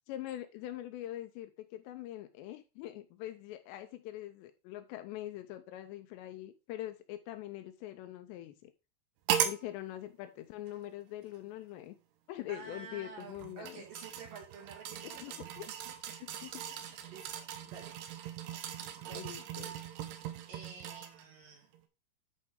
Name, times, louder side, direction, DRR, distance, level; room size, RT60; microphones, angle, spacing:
voice 1, 0.1-8.7 9.4-12.0 12.3-13.8 15.0-15.7 16.2-16.6 19.0-19.7, left 14 dB, 80° left, 9 dB, 2.6 m, -43 dB
sound 1, 9.3-9.6 10.7-10.8 13.2-21.3 21.7-21.8, right 9 dB, 75° right, 2.7 m, -38 dB
voice 2, 12.5-15.5 15.9-16.0 16.7-18.0 19.0-19.4 20.5-21.7, right 5 dB, 60° right, 1 dB, 2.8 m, -50 dB
11.0 x 4.7 x 3.7 m, 0.28 s
omnidirectional pair, 5.3 m